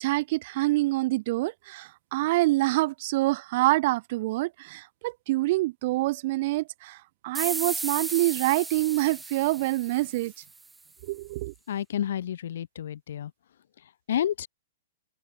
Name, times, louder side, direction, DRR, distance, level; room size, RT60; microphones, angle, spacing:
voice 1, 0.0-7.0 7.2-10.3 11.0-11.5, right 19 dB, 50° right, 1.0 m, -26 dB
sound 1, 7.3-10.7, right 3 dB, 10° right, 0.6 m, -35 dB
voice 2, 11.7-13.3 14.1-14.5, left 10 dB, 70° left, 0.8 m, -30 dB
hypercardioid pair, 125°, 0 cm